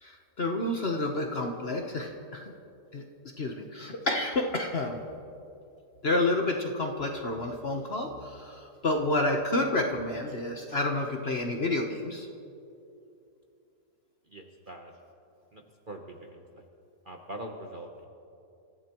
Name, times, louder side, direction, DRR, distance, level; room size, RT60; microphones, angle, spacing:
voice 1, 0.0-2.5 2.9-3.0 3.4-5.0 6.0-12.3, left 2 dB, 45° left, 2 dB, 1.0 m, -29 dB
voice 2, 14.3-14.9 15.5-16.7 17.0-18.1, right 1 dB, 40° right, 2 dB, 0.9 m, -43 dB
27.0 x 15.0 x 3.0 m, 2.7 s
omnidirectional pair, 1.8 m